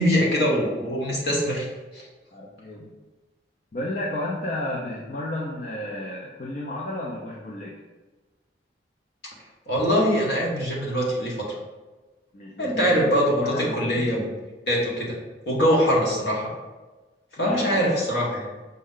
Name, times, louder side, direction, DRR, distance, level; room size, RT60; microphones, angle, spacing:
voice 1, 0.0-1.7 1.9-2.0 9.7-11.5 12.6-14.2 14.7-15.1 15.5-16.5 17.4-18.4, equal, 65° left, -3 dB, 1.0 m, -23 dB
voice 2, 2.3-2.9 3.7-7.8 12.3-13.1 13.3-14.0 15.8-15.9 17.4-17.9, left 1 dB, 45° left, -4 dB, 0.5 m, -32 dB
5.3 x 2.2 x 3.6 m, 1.2 s
head